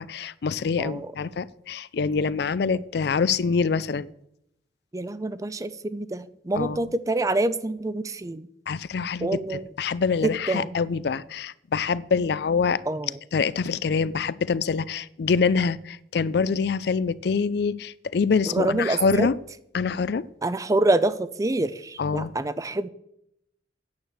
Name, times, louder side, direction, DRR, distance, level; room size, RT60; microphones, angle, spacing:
voice 1, 0.0-4.1 6.5-6.9 8.7-12.8 13.3-19.4 19.7-20.2 22.0-22.3, left 5 dB, 60° left, 18 dB, 0.4 m, -25 dB
voice 2, 4.9-8.5 9.2-9.7 10.2-10.8 12.9-13.2 18.5-19.3 20.4-22.9, right 2 dB, 20° right, 15 dB, 0.4 m, -26 dB
9.5 x 6.5 x 7.4 m, 0.76 s
head